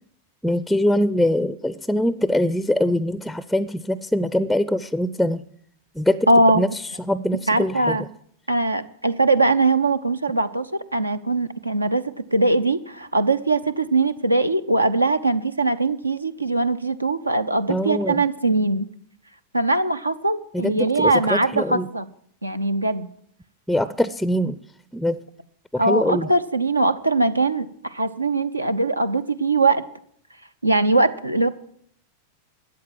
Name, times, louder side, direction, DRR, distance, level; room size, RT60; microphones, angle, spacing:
voice 1, 0.4-5.4 6.0-6.3 6.5-6.7 7.1-8.0 17.7-18.2 20.5-21.9 23.7-24.6 24.9-25.2 25.7-26.3, left 1 dB, ahead, 15 dB, 0.5 m, -23 dB
voice 2, 6.3-6.6 7.5-8.0 8.5-18.9 19.5-22.1 22.4-23.1 25.8-29.8 30.6-31.5, right 2 dB, 85° right, 11 dB, 0.7 m, -21 dB
13.0 x 8.8 x 7.6 m, 0.65 s
figure-of-eight pair, 90°, 0 cm